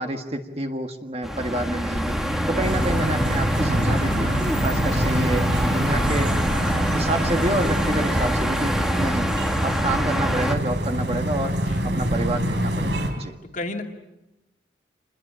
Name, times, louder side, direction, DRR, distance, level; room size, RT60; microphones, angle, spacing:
voice 1, 0.0-2.2 2.5-4.3 4.6-6.4 6.9-9.3 9.6-11.6 11.8-13.3, right 1 dB, 30° right, 5 dB, 1.7 m, -28 dB
sound 1, 1.2-10.6, equal, ahead, 1.6 m, -25 dB
sound 2, 2.6-13.1, right 1 dB, 65° right, 4.0 m, -26 dB
voice 2, 13.4-13.9, left 2 dB, 40° left, 3 dB, 2.5 m, -32 dB
28.0 x 21.5 x 8.8 m, 0.97 s
head